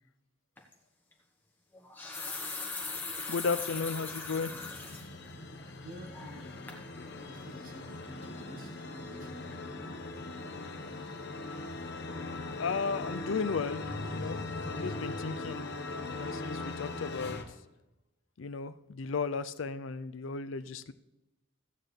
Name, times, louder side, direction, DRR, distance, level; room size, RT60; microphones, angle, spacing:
sound 1, 0.6-0.7 1.7-5.1 5.5-5.6 6.1-6.4 6.7-6.8, left 3 dB, 10° left, 1.2 m, -39 dB
sound 2, 2.8-17.4, left 2 dB, 55° left, 1.0 m, -40 dB
voice 1, 3.3-4.5 12.6-13.8 14.1-14.4 14.6-15.6 16.1-17.4 18.4-20.9, left 5 dB, 80° left, 0.5 m, -34 dB
voice 2, 5.8-6.8 7.2-9.6, right 1 dB, 45° right, 1.2 m, -50 dB
15.0 x 8.8 x 3.3 m
head